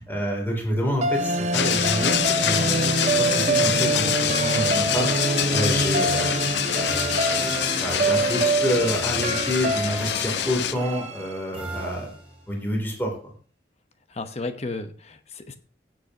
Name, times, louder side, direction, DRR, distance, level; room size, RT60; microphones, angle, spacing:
voice 1, 0.0-4.1 4.4-5.1 5.5-6.4 6.7-7.0 7.8-12.1 12.5-13.3, equal, 10° left, 0 dB, 3.0 m, -28 dB
sound 1, 1.0-11.3, right 2 dB, 40° right, 0.8 m, -25 dB
sound 2, 1.5-10.7, left 10 dB, 70° left, 0.5 m, -26 dB
sound 3, 4.2-12.6, right 2 dB, 10° right, 3.2 m, -39 dB
voice 2, 14.1-15.6, left 3 dB, 35° left, 9 dB, 1.0 m, -33 dB
17.5 x 7.7 x 2.9 m, 0.40 s
head